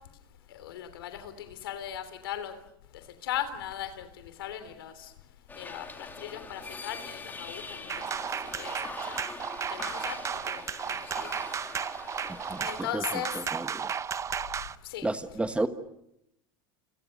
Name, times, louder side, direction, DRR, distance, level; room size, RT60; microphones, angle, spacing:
voice 1, 0.5-2.5 3.2-4.1 4.4-4.9 5.5-8.0 8.6-8.7 9.1-9.2 9.7-10.2 10.5-10.6 10.9-11.3 12.6-13.3 14.9-15.1, left 11 dB, 85° left, 10 dB, 3.3 m, -37 dB
sound 1, 5.5-12.9, left 3 dB, 15° left, 3.4 m, -43 dB
sound 2, 7.9-14.8, right 7 dB, 25° right, 0.9 m, -34 dB
voice 2, 12.3-13.0 13.3-13.9 15.0-15.7, right 2 dB, 10° right, 10 dB, 1.5 m, -32 dB
29.0 x 26.5 x 6.6 m, 0.82 s
supercardioid pair, 110°, 12 cm